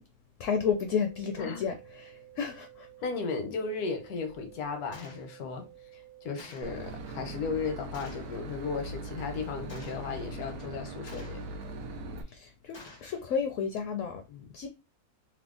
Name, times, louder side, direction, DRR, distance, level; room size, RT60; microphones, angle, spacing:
voice 1, 0.4-2.9 12.3-14.2 14.5-14.7, left 6 dB, 70° left, 0.8 m, -32 dB
sound 1, 0.6-6.6, right 16 dB, 55° right, 0.6 m, -53 dB
voice 2, 1.4-1.7 3.0-5.6 5.9-11.4 14.3-14.5, left 4 dB, 85° left, 1.3 m, -35 dB
Gunshot gunfire, 4.9-5.2 6.4-6.8 7.9-8.3 9.7-10.1 11.1-11.5 12.7-13.1, left 2 dB, 45° left, 0.3 m, -50 dB
Boat Water vehicle / Engine, 6.6-12.2, right 1 dB, 90° right, 1.1 m, -40 dB
3.4 x 2.0 x 3.6 m
omnidirectional pair, 1.5 m